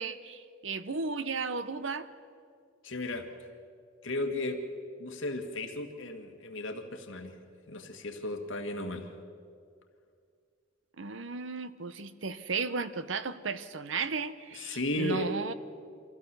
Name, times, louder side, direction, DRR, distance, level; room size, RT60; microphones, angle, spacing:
voice 1, 0.0-2.1 11.0-15.5, right 4 dB, 75° right, 13 dB, 0.9 m, -35 dB
voice 2, 2.8-3.3 4.0-4.6 5.0-7.4 7.7-9.1 14.5-15.3, left 2 dB, 80° left, 4 dB, 1.9 m, -35 dB
25.0 x 15.5 x 6.9 m, 2.3 s
head